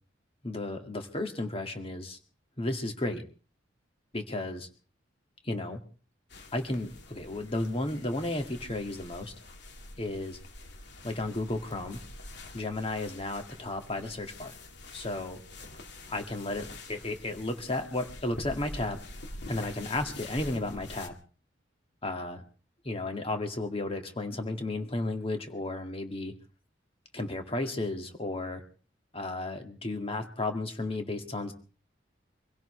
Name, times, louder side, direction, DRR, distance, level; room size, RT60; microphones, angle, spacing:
voice 1, 0.4-2.2 2.6-3.2 4.1-4.7 5.4-5.8 6.5-9.3 10.0-10.4 11.0-12.0 12.5-14.5 14.9-15.4 16.1-19.0 19.5-21.1 22.0-22.4 22.8-26.3 27.1-28.6 29.1-31.5, left 2 dB, 30° left, 5 dB, 2.2 m, -33 dB
sound 1, 6.3-21.1, left 2 dB, 65° left, 2.3 m, -46 dB
25.5 x 16.5 x 3.3 m, 0.38 s
head